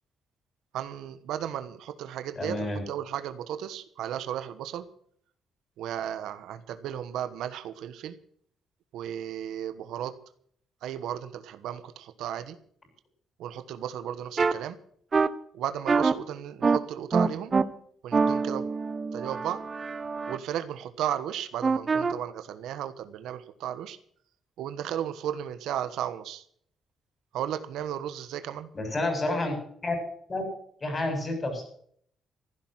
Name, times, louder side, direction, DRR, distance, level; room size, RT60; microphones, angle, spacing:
voice 1, 0.7-4.9 5.8-8.2 8.9-10.1 10.8-12.6 13.4-14.8 15.5-17.5 18.0-18.7 19.1-19.6 20.3-24.0 24.6-26.4 27.3-28.7, right 10 dB, 85° right, 12 dB, 1.2 m, -34 dB
voice 2, 2.4-2.8 28.7-29.6 29.8-30.0 30.3-30.4 30.8-31.6, left 2 dB, 30° left, 5 dB, 7.4 m, -29 dB
sound 1, 14.4-14.5 15.1-15.3 15.9-16.1 16.6-16.8 17.1-17.6 18.1-20.4 21.6-22.1, right 4 dB, 35° right, 1.0 m, -25 dB
15.0 x 12.0 x 6.3 m, 0.62 s
cardioid pair, 90°, 0 cm